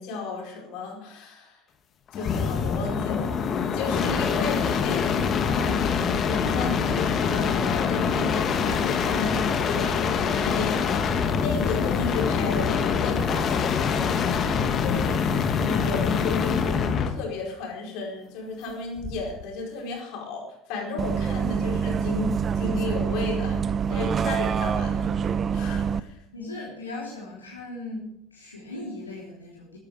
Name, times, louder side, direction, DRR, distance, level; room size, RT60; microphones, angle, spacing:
voice 1, 0.0-1.6 2.1-3.3 3.7-15.2 15.5-23.6 23.9-25.3 25.5-26.2, left 3 dB, 55° left, 1 dB, 4.7 m, -34 dB
sound 1, 2.1-17.2 19.0-19.4, left 6 dB, 40° left, 1.6 m, -25 dB
Bus, 21.0-26.0, right 7 dB, 35° right, 0.6 m, -26 dB
voice 2, 26.3-29.8, left 2 dB, 85° left, -4 dB, 3.5 m, -38 dB
14.5 x 10.5 x 6.4 m, 0.71 s
figure-of-eight pair, 65°, 0 cm